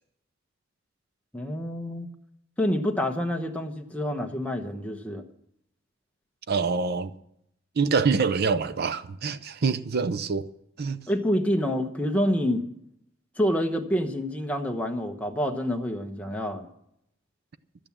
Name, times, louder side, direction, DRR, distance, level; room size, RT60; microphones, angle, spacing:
voice 1, 1.3-2.1 2.6-5.2 11.1-12.6 13.4-16.7, equal, 10° left, 1.1 m, -27 dB
voice 2, 6.5-7.1 7.8-10.5 10.8-11.0, right 5 dB, 55° right, 0.6 m, -25 dB
12.5 x 8.9 x 7.2 m
head